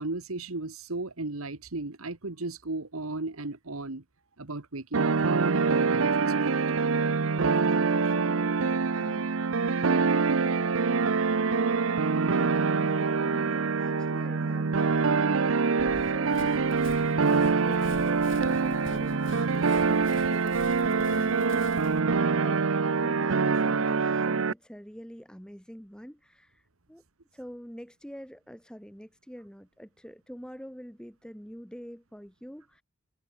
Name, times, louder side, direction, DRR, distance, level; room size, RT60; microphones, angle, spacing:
voice 1, 0.0-4.0 4.4-6.6, right 2 dB, 90° right, 1.7 m, -35 dB
sound 1, 4.9-24.5, right 4 dB, 75° right, 0.7 m, -25 dB
voice 2, 7.3-16.9 17.2-22.0 22.4-27.0 27.3-32.8, equal, 5° left, 6.7 m, -45 dB
Run, 15.8-22.0, left 2 dB, 60° left, 3.6 m, -47 dB
head